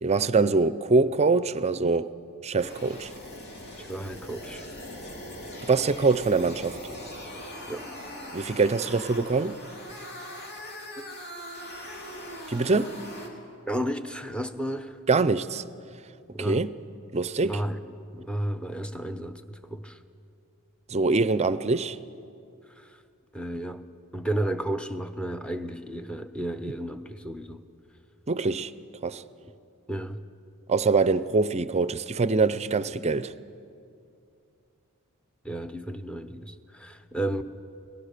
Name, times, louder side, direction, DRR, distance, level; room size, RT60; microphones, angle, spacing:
voice 1, 0.0-2.1 2.4-3.1 5.7-6.8 8.3-9.6 12.5-13.0 15.1-15.6 16.4-16.8 17.1-17.6 20.9-22.0 28.3-28.7 29.0-29.2 30.7-33.3, right 4 dB, 30° right, 0.5 m, -24 dB
sound 1, 2.6-13.3, left 1 dB, 50° left, 3.1 m, -41 dB
voice 2, 3.8-4.6 7.7-7.9 11.0-11.1 13.7-15.0 16.3-16.6 17.4-17.8 18.1-20.0 22.6-23.0 23.3-23.8 24.1-27.6 29.9-30.2 35.4-37.4, right 1 dB, 5° left, 0.8 m, -33 dB
24.5 x 19.0 x 6.7 m
head